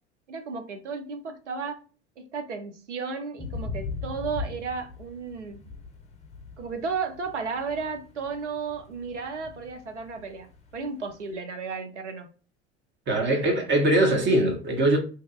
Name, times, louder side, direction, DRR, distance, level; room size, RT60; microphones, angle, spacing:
voice 1, 0.3-1.8 2.2-5.6 6.6-12.3 13.3-13.5, right 5 dB, 85° right, 0.5 m, -34 dB
sound 1, 3.4-11.3, left 4 dB, 20° left, 0.6 m, -40 dB
voice 2, 13.1-15.0, right 1 dB, 30° right, 0.9 m, -22 dB
2.9 x 2.2 x 2.2 m
figure-of-eight pair, 70°, 35 cm